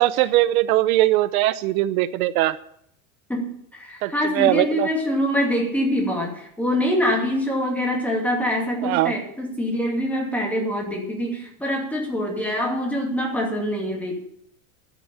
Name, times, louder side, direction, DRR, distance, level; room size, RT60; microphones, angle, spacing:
voice 1, 0.0-2.6 4.0-4.9 8.8-9.1, right 15 dB, 85° right, 14 dB, 0.8 m, -20 dB
voice 2, 3.3-14.2, equal, 5° left, -1 dB, 2.4 m, -24 dB
12.5 x 6.9 x 8.7 m, 0.73 s
supercardioid pair, 170°, 42 cm